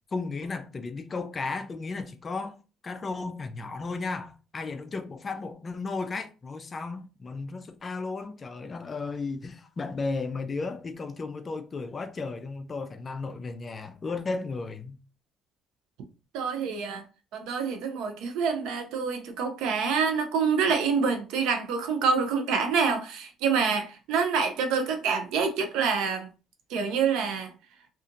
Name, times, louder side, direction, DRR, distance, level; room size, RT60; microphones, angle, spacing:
voice 1, 0.1-2.6 2.8-15.0, left 3 dB, 30° left, 0.4 m, -34 dB
voice 2, 16.3-17.0 17.3-26.3 26.7-27.5, right 5 dB, 80° right, 0.6 m, -26 dB
2.7 x 2.4 x 2.5 m
cardioid pair, 115°, 0 cm